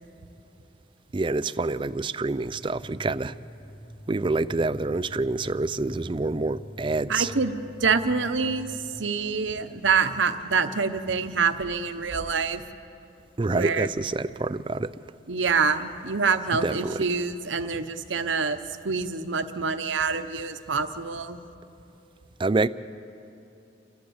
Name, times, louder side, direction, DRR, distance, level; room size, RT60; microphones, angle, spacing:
voice 1, 1.1-3.3 4.1-7.3 13.4-14.9 16.6-17.0 22.4-22.7, right 3 dB, 25° right, 0.4 m, -27 dB
sound 1, 2.4-9.0, left 1 dB, 50° left, 2.8 m, -44 dB
voice 2, 7.1-7.5 7.8-8.7 9.0-12.6 13.5-13.9 15.3-18.6 18.8-21.4, right 5 dB, 80° right, 1.0 m, -26 dB
29.5 x 12.0 x 8.0 m
head